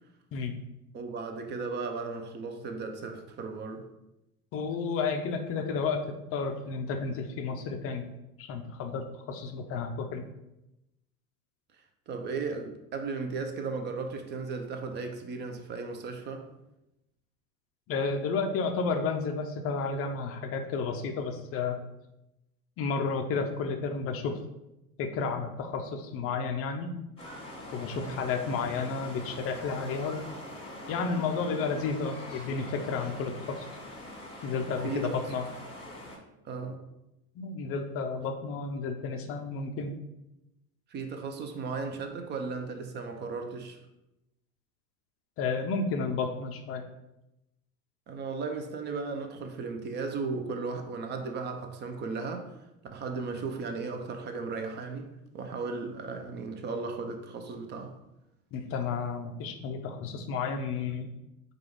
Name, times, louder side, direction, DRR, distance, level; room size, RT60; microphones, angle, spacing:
voice 1, 0.9-3.8 12.1-16.5 27.9-28.2 34.7-35.2 36.4-36.8 40.9-43.8 48.1-52.5 52.9-58.0, right 4 dB, 25° right, 0.5 m, -36 dB
voice 2, 4.5-6.1 6.3-8.1 8.4-10.2 17.9-21.8 22.8-24.4 25.0-26.9 27.7-30.2 30.9-33.7 34.4-35.4 37.4-40.0 45.4-46.8 58.5-61.1, left 4 dB, 30° left, 0.5 m, -32 dB
sound 1, 27.2-36.2, left 1 dB, 10° left, 1.4 m, -43 dB
4.8 x 2.4 x 4.6 m
figure-of-eight pair, 75°, 45 cm